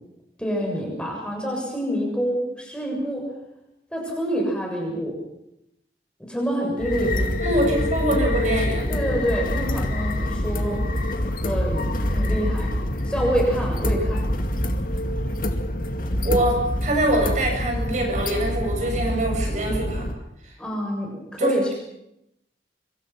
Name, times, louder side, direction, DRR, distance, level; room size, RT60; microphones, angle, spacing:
voice 1, 0.4-3.2 3.9-5.2 6.3-7.3 7.6-7.8 8.9-10.8 11.1-12.7 13.1-14.3 20.6-21.7, equal, 5° left, -1 dB, 7.0 m, -27 dB
sound 1, 6.8-20.1, left 1 dB, 50° left, 2.2 m, -25 dB
voice 2, 7.4-8.9 16.2-20.1 21.4-21.5, right 1 dB, 45° right, 1 dB, 7.4 m, -24 dB
26.5 x 26.0 x 5.9 m, 0.82 s
head